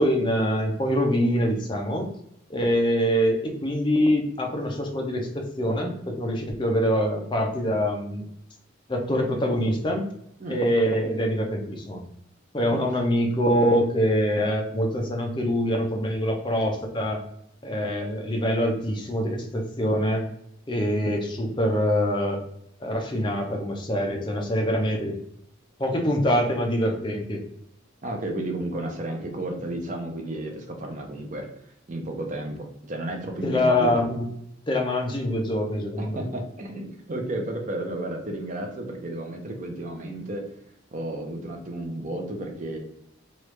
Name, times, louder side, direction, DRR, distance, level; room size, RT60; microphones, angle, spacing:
voice 1, 0.0-2.1 2.5-8.3 8.9-10.1 10.5-12.0 12.5-17.2 17.6-20.2 20.7-22.4 22.8-25.2 25.8-27.4 33.4-34.3 34.7-36.2, equal, 25° left, 1 dB, 0.6 m, -24 dB
voice 2, 28.0-31.5 31.9-34.0 36.0-40.5 40.9-42.8, right 1 dB, 40° right, 2 dB, 0.6 m, -32 dB
3.1 x 2.4 x 3.1 m, 0.76 s
head